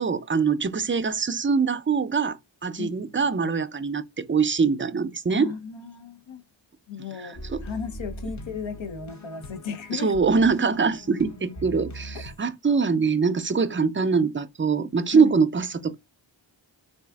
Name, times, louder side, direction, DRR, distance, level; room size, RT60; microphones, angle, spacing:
voice 1, 0.0-5.5 7.2-7.6 9.9-15.9, right 5 dB, 25° right, 0.4 m, -23 dB
voice 2, 5.3-6.4 6.9-10.1 12.1-12.2 15.1-15.3, left 6 dB, 80° left, 0.9 m, -35 dB
sound 1, 7.3-12.4, equal, 40° left, 0.8 m, -40 dB
4.0 x 2.4 x 2.3 m
cardioid pair, 45°, 46 cm